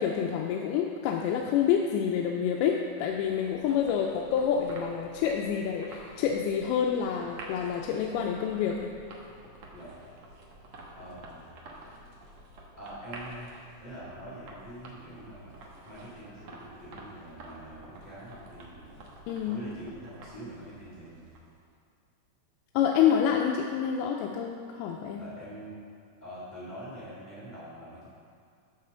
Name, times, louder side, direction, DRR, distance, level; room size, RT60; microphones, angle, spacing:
voice 1, 0.0-8.9 19.3-19.6 22.7-25.2, left 8 dB, 85° left, 0 dB, 2.5 m, -28 dB
sound 1, 2.6-21.6, right 2 dB, 70° right, 1.6 m, -50 dB
voice 2, 11.0-11.6 12.7-13.5 13.8-15.6 15.8-19.1 19.4-21.4 25.1-25.8 26.2-28.1, right 1 dB, 35° left, -10 dB, 0.7 m, -44 dB
11.5 x 4.1 x 6.9 m, 2.4 s
omnidirectional pair, 4.5 m